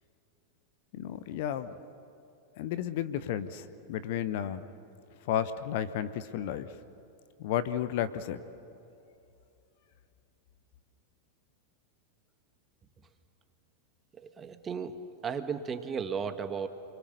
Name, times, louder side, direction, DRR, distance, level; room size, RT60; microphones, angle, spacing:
voice 1, 0.9-1.8 2.6-4.7 5.3-6.7 7.4-8.4, left 10 dB, 50° left, 14 dB, 1.0 m, -32 dB
voice 2, 14.2-15.0 15.2-16.7, right 6 dB, 20° right, 9 dB, 1.5 m, -35 dB
29.0 x 22.5 x 6.7 m, 2.7 s
figure-of-eight pair, 90°, 0 cm